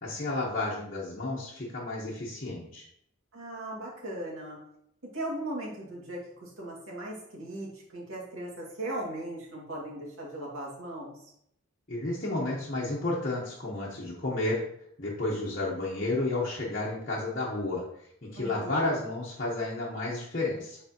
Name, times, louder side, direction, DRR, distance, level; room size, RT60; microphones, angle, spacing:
voice 1, 0.0-2.8 11.9-14.6 15.0-17.8 18.3-20.8, left 2 dB, 40° left, -7 dB, 1.1 m, -31 dB
voice 2, 3.3-4.6 5.1-11.2 18.3-18.9, right 1 dB, 75° right, -4 dB, 2.2 m, -38 dB
8.0 x 4.2 x 2.9 m, 0.72 s
head